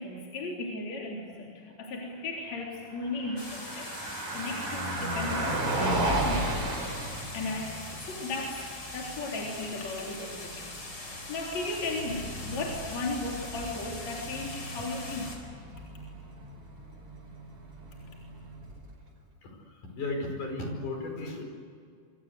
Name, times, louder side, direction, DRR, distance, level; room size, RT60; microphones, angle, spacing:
voice 1, 0.0-3.9 4.3-6.7 7.0-10.7 11.0-15.4, left 3 dB, 55° left, -2 dB, 4.7 m, -36 dB
Car passing by, 3.0-19.1, right 1 dB, 60° right, 6.6 m, -35 dB
sound 1, 3.4-15.4, left 2 dB, 30° left, 5.0 m, -42 dB
voice 2, 19.4-21.4, left 2 dB, 70° left, 2 dB, 6.4 m, -35 dB
27.5 x 25.0 x 8.2 m, 2.3 s
omnidirectional pair, 3.8 m